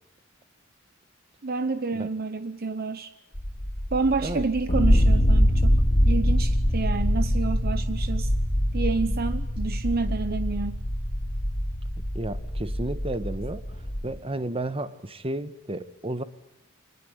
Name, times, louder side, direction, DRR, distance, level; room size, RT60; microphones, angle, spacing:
voice 1, 1.4-3.1 3.9-8.3 8.7-10.8, right 3 dB, 50° right, 0.9 m, -29 dB
sound 1, 3.3-14.1, equal, 45° left, 3.2 m, -24 dB
voice 2, 12.0-13.6 14.0-16.2, right 1 dB, 30° right, 1.4 m, -32 dB
25.5 x 20.5 x 8.2 m
head